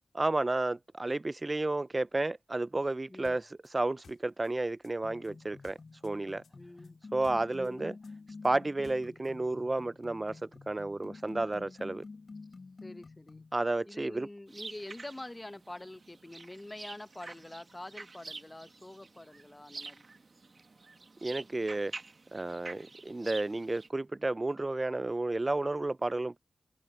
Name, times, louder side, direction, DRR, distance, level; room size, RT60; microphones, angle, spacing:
voice 1, 0.1-5.8 6.0-6.4 7.1-7.9 8.4-10.4 10.7-12.0 13.5-14.3 21.2-21.9 22.3-26.4, right 2 dB, 35° right, 0.4 m, -32 dB
sound 1, 3.2-6.2 6.4-9.4, left 5 dB, 80° left, 2.3 m, -60 dB
sound 2, 5.0-13.5, left 4 dB, 60° left, 2.9 m, -49 dB
voice 2, 6.5-7.0 7.6-8.0 12.8-13.4 13.9-20.1, left 1 dB, 25° left, 1.1 m, -46 dB
sound 3, 14.5-23.9, right 3 dB, 55° right, 1.6 m, -48 dB
cardioid pair, 40°, 0 cm